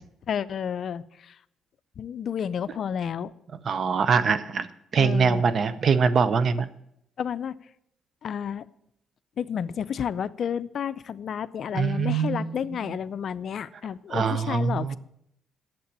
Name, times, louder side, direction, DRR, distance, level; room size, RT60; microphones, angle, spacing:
voice 1, 0.3-1.4 2.0-3.3 5.0-5.4 7.2-7.5 8.2-8.6 9.4-15.0, left 8 dB, 60° left, 16 dB, 0.4 m, -31 dB
voice 2, 3.7-4.7 4.9-6.7 11.7-12.5 14.1-15.0, right 5 dB, 50° right, 14 dB, 0.7 m, -23 dB
8.6 x 7.4 x 8.5 m, 0.77 s
cardioid pair, 90°, 0 cm